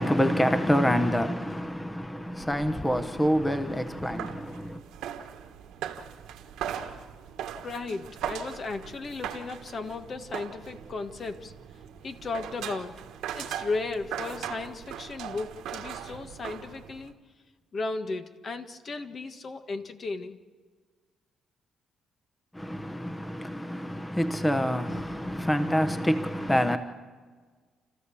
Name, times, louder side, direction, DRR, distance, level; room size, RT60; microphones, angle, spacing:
voice 1, 0.0-4.8 22.5-26.8, equal, 10° left, 1.0 m, -27 dB
sound 1, 2.2-17.1, right 9 dB, 90° right, 1.5 m, -40 dB
voice 2, 7.6-11.5 12.0-13.0 13.3-17.1 17.7-20.4, left 3 dB, 45° left, 1.6 m, -35 dB
29.5 x 14.5 x 7.1 m
cardioid pair, 90°, 0 cm